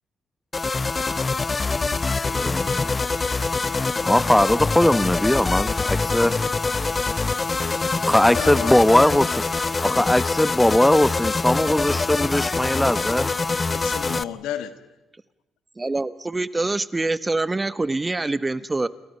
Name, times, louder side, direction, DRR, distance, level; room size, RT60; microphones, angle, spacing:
sound 1, 0.5-14.2, left 3 dB, 30° left, 0.8 m, -24 dB
voice 1, 2.3-2.9 4.0-6.4 8.0-13.3, left 1 dB, 10° left, 1.1 m, -20 dB
voice 2, 8.4-9.0 13.7-14.7, left 11 dB, 85° left, 1.7 m, -32 dB
voice 3, 15.8-18.9, right 2 dB, 25° right, 1.1 m, -25 dB
29.0 x 28.5 x 5.6 m
supercardioid pair, 55°, 0 cm